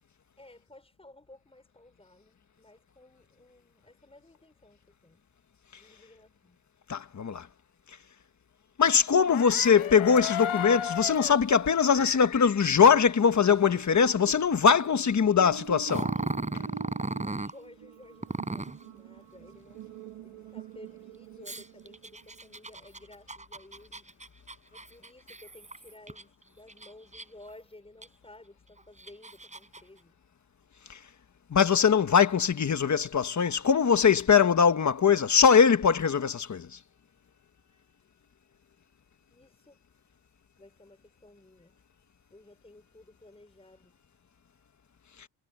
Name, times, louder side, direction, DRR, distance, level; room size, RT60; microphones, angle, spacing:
voice 1, 0.4-5.2 5.7-6.7 17.2-19.9 20.2-24.3 24.7-30.2 37.6-38.1 39.3-39.8 40.6-41.8 42.3-44.0, left 2 dB, 10° left, 5.5 m, -55 dB
voice 2, 6.9-7.5 7.9-8.0 8.8-16.1 30.9-31.0 31.5-36.8, left 6 dB, 35° left, 1.4 m, -22 dB
sound 1, 9.1-13.9 14.2-15.3, left 10 dB, 85° left, 1.3 m, -36 dB
sound 2, 13.3-22.7, right 9 dB, 75° right, 1.8 m, -46 dB
Growling, 15.9-17.5 18.2-18.8 21.4-26.2 26.7-27.5 28.0-28.1 28.8-29.8, right 2 dB, 15° right, 4.7 m, -36 dB
wide cardioid pair, 145°, 48 cm